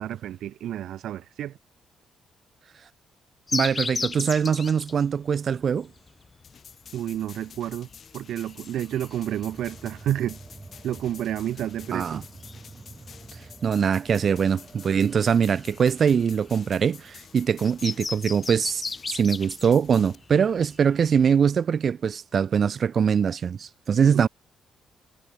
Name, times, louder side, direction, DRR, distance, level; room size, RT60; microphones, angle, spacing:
voice 1, 0.0-1.6 6.9-7.9 8.1-10.4 10.8-12.2 24.0-24.2, right 11 dB, 75° right, 0.9 m, -30 dB
sound 1, 3.5-21.3, left 4 dB, 30° left, 1.4 m, -37 dB
voice 2, 3.5-5.9 11.9-12.2 13.6-24.3, right 7 dB, 50° right, 0.5 m, -23 dB
sound 2, 6.4-20.1, left 7 dB, 50° left, 1.9 m, -49 dB
sound 3, 8.4-18.2, right 3 dB, 25° right, 5.4 m, -49 dB
cardioid pair, 90°, 0 cm